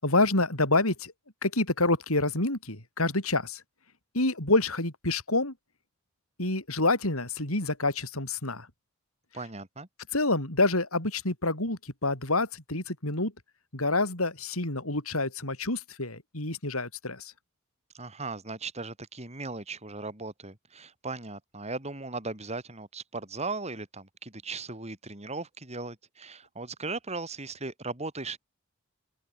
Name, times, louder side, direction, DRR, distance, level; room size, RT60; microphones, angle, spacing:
voice 1, 0.0-1.1 1.4-3.6 4.1-5.5 6.4-8.7 10.1-13.3 13.7-17.3, left 2 dB, 85° left, 7.3 m, -27 dB
voice 2, 9.3-9.9 17.9-28.4, right 3 dB, 30° right, 4.2 m, -37 dB
open air
head